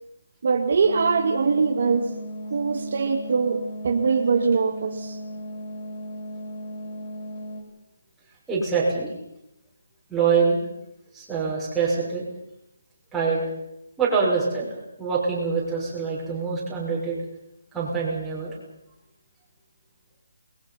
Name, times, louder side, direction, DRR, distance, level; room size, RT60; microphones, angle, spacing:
voice 1, 0.4-2.2 2.5-5.2, right 5 dB, 50° right, 4 dB, 2.1 m, -22 dB
sound 1, 0.8-7.6, equal, 35° left, 6.2 m, -36 dB
voice 2, 8.5-9.1 10.1-10.6 11.1-12.2 13.1-13.4 14.0-14.7 15.0-17.2 17.7-18.5, right 5 dB, 5° right, -7 dB, 6.0 m, -24 dB
29.0 x 21.5 x 5.7 m, 0.85 s
hypercardioid pair, 170°, 0 cm